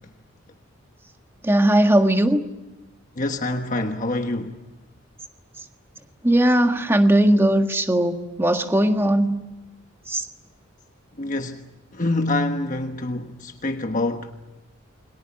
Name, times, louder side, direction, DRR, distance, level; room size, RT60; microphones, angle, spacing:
voice 1, 1.4-2.4 6.2-9.4 10.1-10.2, right 1 dB, 10° right, 1.7 m, -18 dB
voice 2, 3.2-4.6 11.2-14.3, left 2 dB, 40° left, 1.3 m, -26 dB
29.0 x 23.0 x 7.3 m
head